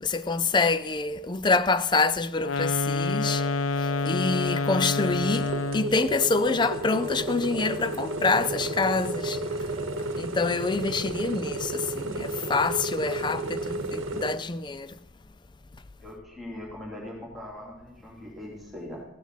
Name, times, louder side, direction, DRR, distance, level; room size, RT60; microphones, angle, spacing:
voice 1, 0.0-3.4 4.1-5.5 5.7-9.4 10.2-14.9, left 3 dB, 20° left, 0.4 m, -26 dB
sound 1, 2.4-6.0, left 3 dB, 90° left, 0.4 m, -27 dB
sound 2, 3.2-3.5 3.8-4.0 4.3-5.7 5.9-6.2 6.4-6.7 7.0-7.3 7.5-7.8 8.1-8.3 8.6-8.9 9.1-9.4 9.7-10.0, left 5 dB, 15° right, 3.6 m, -42 dB
sound 3, 5.2-14.3, right 2 dB, 80° right, 1.0 m, -32 dB
voice 2, 13.1-13.5 16.0-19.0, left 1 dB, ahead, 3.0 m, -41 dB
15.5 x 12.5 x 4.1 m
head